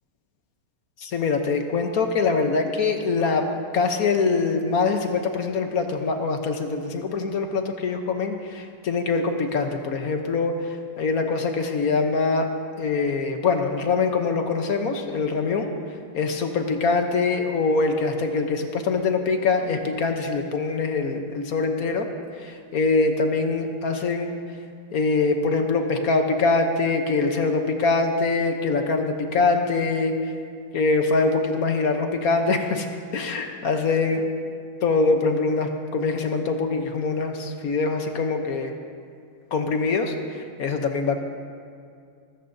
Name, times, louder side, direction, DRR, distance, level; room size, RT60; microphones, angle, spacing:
voice 1, 1.0-3.5 3.7-10.6 11.0-12.5 12.8-15.7 16.1-22.1 22.4-24.3 24.9-30.1 30.7-32.9 33.1-34.2 34.8-38.7 39.5-41.2, left 4 dB, 55° left, 5 dB, 1.1 m, -23 dB
23.5 x 13.5 x 2.7 m, 2.2 s
omnidirectional pair, 2.3 m